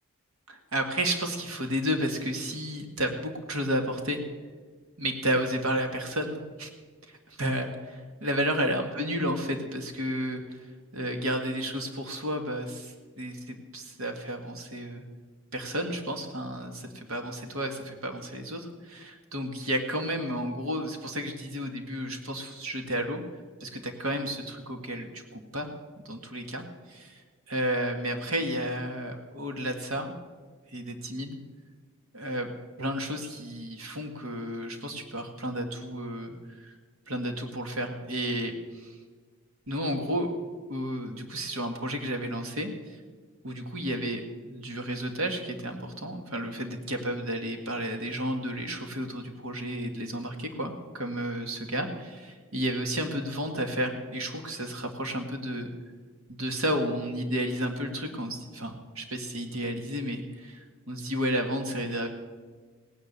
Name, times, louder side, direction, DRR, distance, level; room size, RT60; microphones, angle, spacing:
voice 1, 0.5-4.2 5.0-6.7 7.1-10.7 10.9-15.0 15.5-23.2 23.6-25.7 26.0-27.2 27.5-30.2 30.7-31.4 32.1-32.5 32.8-36.3 36.6-36.7 37.1-38.9 39.7-40.3 40.7-42.7 43.4-55.7 56.3-62.1, equal, 75° right, 5 dB, 1.9 m, -32 dB
17.5 x 9.8 x 6.7 m, 1.5 s
head